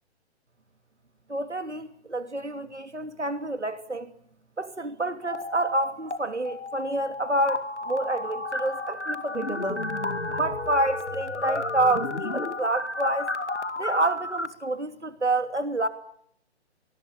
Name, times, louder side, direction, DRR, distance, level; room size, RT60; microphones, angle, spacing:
voice 1, 1.3-4.1 4.6-9.8 10.3-13.3 13.8-15.9, right 2 dB, 90° right, 3.0 m, -28 dB
sound 1, 5.2-6.2 6.5-14.5, left 2 dB, 90° left, 2.4 m, -32 dB
27.0 x 19.5 x 8.9 m
figure-of-eight pair, 135°, 34 cm